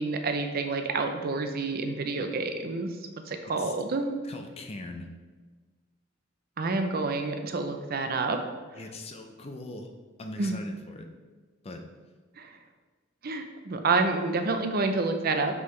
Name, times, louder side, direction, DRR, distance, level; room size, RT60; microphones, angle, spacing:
voice 1, 0.0-2.9 3.3-4.2 6.6-8.4 10.4-10.6 12.4-12.5 13.2-15.6, right 3 dB, 50° right, 6 dB, 0.5 m, -28 dB
voice 2, 4.2-5.1 8.7-9.9 10.2-11.1 11.6-11.9, left 2 dB, 30° left, 4 dB, 0.5 m, -41 dB
6.0 x 5.5 x 3.2 m, 1.4 s
head